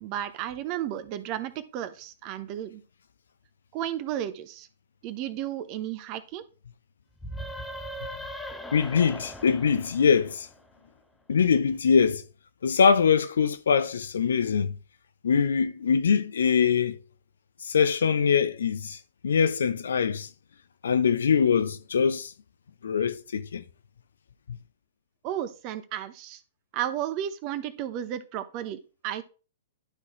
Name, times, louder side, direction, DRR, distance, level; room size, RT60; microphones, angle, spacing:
voice 1, 0.0-2.8 3.7-4.7 5.0-6.4 25.2-26.4 26.7-29.2, right 11 dB, 40° right, 0.8 m, -33 dB
sound 1, 7.2-10.8, equal, 5° left, 0.8 m, -39 dB
voice 2, 8.7-10.5 11.3-12.2 12.6-14.7 15.2-17.0 17.6-19.0 19.2-20.3 20.8-22.3 22.8-23.6, left 6 dB, 70° left, 0.6 m, -23 dB
11.5 x 3.9 x 3.0 m
figure-of-eight pair, 110°, 0 cm